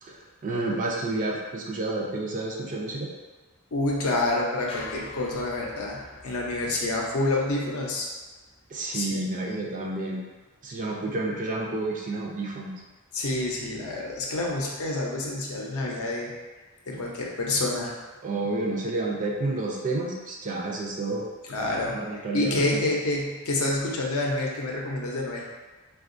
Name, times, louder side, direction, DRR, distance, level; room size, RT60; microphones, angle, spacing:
voice 1, 0.0-3.1 8.7-10.2 10.6-12.7 16.9-17.0 18.2-21.3 21.9-22.9, right 2 dB, 35° right, -2 dB, 0.4 m, -30 dB
voice 2, 3.7-8.1 8.9-9.5 13.1-16.3 16.9-18.0 21.5-22.0 22.3-25.4, left 2 dB, 70° left, -2 dB, 0.6 m, -28 dB
sound 1, 4.7-9.0, left 3 dB, 25° left, 0.4 m, -46 dB
3.5 x 2.3 x 2.5 m, 1.3 s
head